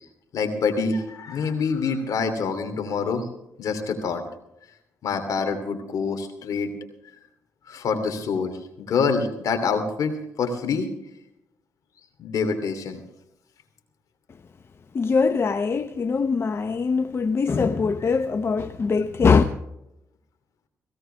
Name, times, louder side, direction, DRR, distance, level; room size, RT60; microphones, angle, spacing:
voice 1, 0.3-3.3 3.6-4.2 5.0-6.7 7.7-10.9 12.2-13.0, left 5 dB, 70° left, 2.9 m, -26 dB
voice 2, 14.9-19.4, left 5 dB, 45° left, 0.8 m, -22 dB
17.5 x 17.0 x 3.4 m
cardioid pair, 80°, 6 cm